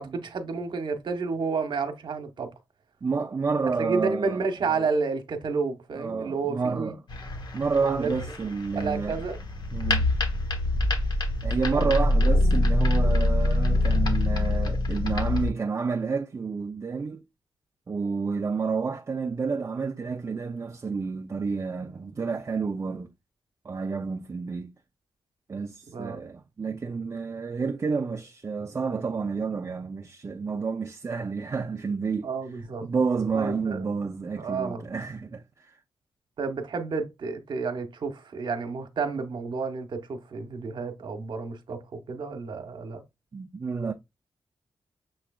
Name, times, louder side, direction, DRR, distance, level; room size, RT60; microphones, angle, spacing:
voice 1, 0.0-2.5 3.8-6.9 7.8-8.1 8.7-9.4 11.7-11.9 25.9-26.2 32.2-32.9 33.3-33.8 34.4-34.9 36.4-43.0, right 4 dB, 65° right, 1.1 m, -30 dB
voice 2, 3.0-4.4 4.7-4.8 5.9-7.0 7.5-9.2 9.7-10.1 11.4-17.2 17.9-23.1 23.6-24.7 25.5-32.3 32.8-35.8 43.3-43.9, right 5 dB, 35° right, 0.5 m, -30 dB
sound 1, 7.1-15.5, left 2 dB, 55° left, 1.3 m, -25 dB
6.9 x 3.2 x 2.4 m
cardioid pair, 100°, 9 cm